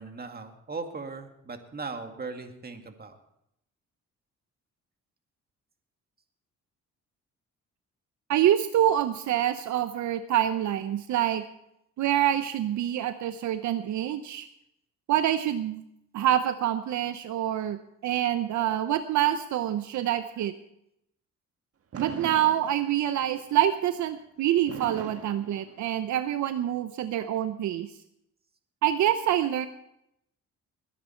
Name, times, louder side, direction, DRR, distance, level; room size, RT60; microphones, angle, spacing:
voice 1, 0.0-3.2, right 4 dB, 30° right, 6 dB, 2.1 m, -38 dB
voice 2, 8.3-11.4 12.0-14.5 15.1-15.8 16.1-20.5 22.0-27.9 28.8-29.7, right 11 dB, 70° right, 11 dB, 0.8 m, -26 dB
Fireworks, 21.9-23.2 24.7-26.2, right 6 dB, 50° right, 1.7 m, -40 dB
21.0 x 10.0 x 4.5 m, 0.78 s
cardioid pair, 90°, 30 cm